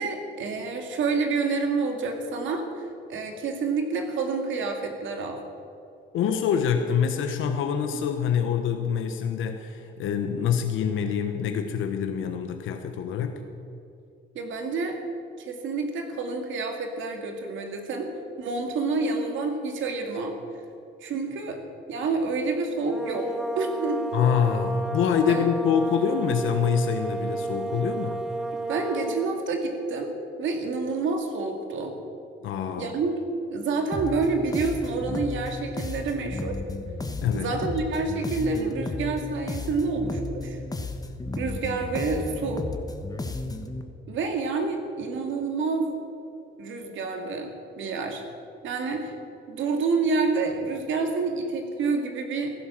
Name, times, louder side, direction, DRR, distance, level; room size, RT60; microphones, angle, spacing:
voice 1, 0.0-5.4 14.3-15.0 15.4-18.1 18.4-20.4 21.0-21.6 21.9-23.3 23.6-24.1 25.3-25.5 28.5-30.1 30.4-32.0 32.8-33.2 33.5-36.6 37.3-40.6 41.4-42.7 44.1-46.0 46.6-47.5 47.8-48.3 48.6-49.1 49.5-52.5, right 4 dB, 75° right, 4 dB, 2.3 m, -28 dB
voice 2, 6.1-13.4 24.1-28.1 32.4-32.9 37.2-37.5, left 7 dB, 80° left, 6 dB, 1.1 m, -25 dB
sound 1, 22.8-29.4, right 2 dB, ahead, 0.8 m, -32 dB
sound 2, 33.9-43.8, left 2 dB, 20° left, 1.3 m, -34 dB
15.0 x 11.5 x 7.4 m, 2.6 s
cardioid pair, 90°, 20 cm